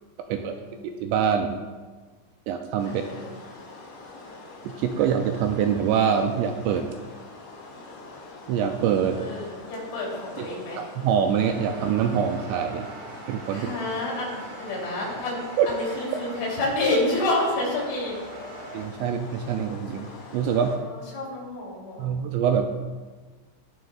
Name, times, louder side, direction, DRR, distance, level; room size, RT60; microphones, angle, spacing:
voice 1, 0.3-0.8 2.8-3.3 9.1-10.9 13.5-15.4 15.7-18.2 20.5-22.2, left 2 dB, 80° left, -5 dB, 5.5 m, -29 dB
voice 2, 0.8-1.6 2.5-3.0 4.7-6.9 8.5-9.2 10.4-10.5 10.8-12.9 13.3-13.7 15.6-15.7 18.7-20.1 20.3-20.7 22.0-22.8, right 8 dB, 85° right, 5 dB, 2.5 m, -24 dB
sound 1, 2.8-20.8, left 3 dB, 60° left, 2.2 m, -44 dB
sound 2, 11.3-18.8, right 2 dB, 65° right, 3.7 m, -43 dB
18.5 x 6.2 x 2.4 m, 1.4 s
omnidirectional pair, 5.3 m